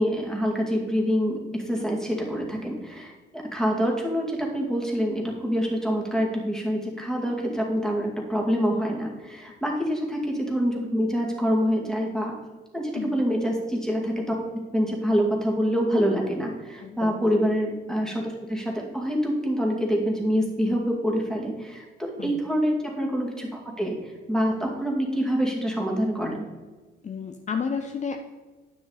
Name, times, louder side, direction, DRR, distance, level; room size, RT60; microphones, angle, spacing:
voice 1, 0.0-12.4 12.7-14.4 14.7-26.5, equal, 5° left, -1 dB, 2.3 m, -26 dB
voice 2, 12.9-13.2 16.8-17.2 22.2-22.3 27.0-28.2, left 6 dB, 35° left, 6 dB, 0.6 m, -31 dB
9.7 x 6.1 x 4.1 m, 1.3 s
cardioid pair, 90°, 20 cm